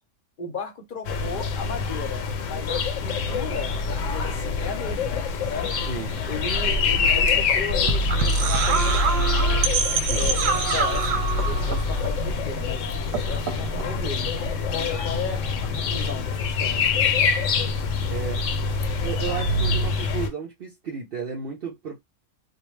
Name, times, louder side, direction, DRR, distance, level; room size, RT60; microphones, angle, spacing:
voice 1, 0.4-5.7 6.3-9.5 10.1-14.4 14.7-16.9, left 5 dB, 50° left, 0.7 m, -35 dB
sound 1, 1.1-20.3, left 4 dB, 80° left, 0.9 m, -25 dB
sound 2, 6.6-12.8 13.0-14.1, right 5 dB, 90° right, 1.0 m, -27 dB
voice 2, 18.0-18.5 19.0-22.0, right 6 dB, 55° right, 0.8 m, -33 dB
2.7 x 2.1 x 3.1 m
omnidirectional pair, 1.3 m